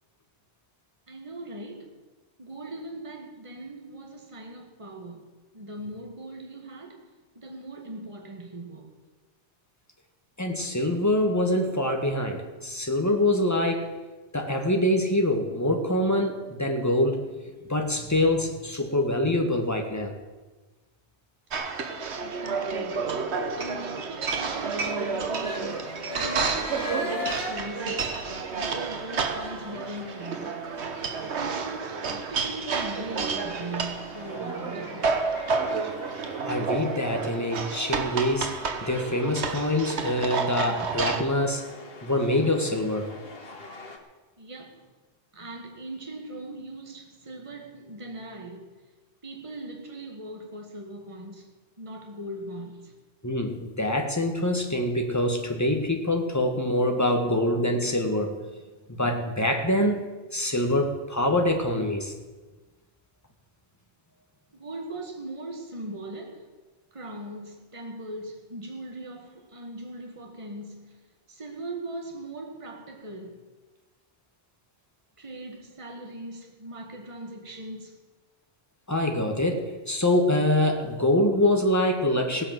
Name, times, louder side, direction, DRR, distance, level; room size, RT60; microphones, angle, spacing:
voice 1, 1.1-1.9 2.4-5.3 5.5-7.1 7.4-9.0 22.2-23.1 23.6-28.2 28.6-30.7 31.3-35.1 44.4-44.9 45.3-48.8 49.2-51.5 51.8-53.0 64.5-66.5 66.9-71.0 71.3-73.5 75.2-78.0, right 1 dB, 30° right, 1.7 m, -40 dB
voice 2, 10.4-13.9 14.3-20.1 36.5-38.5 38.8-41.7 42.0-43.1 53.2-58.4 58.9-62.1 78.9-82.4, left 1 dB, 15° left, 1.7 m, -25 dB
sound 1, 21.5-41.2, right 5 dB, 75° right, 1.3 m, -30 dB
sound 2, 24.3-44.0, left 3 dB, 60° left, 1.8 m, -42 dB
16.5 x 8.5 x 7.6 m
omnidirectional pair, 1.1 m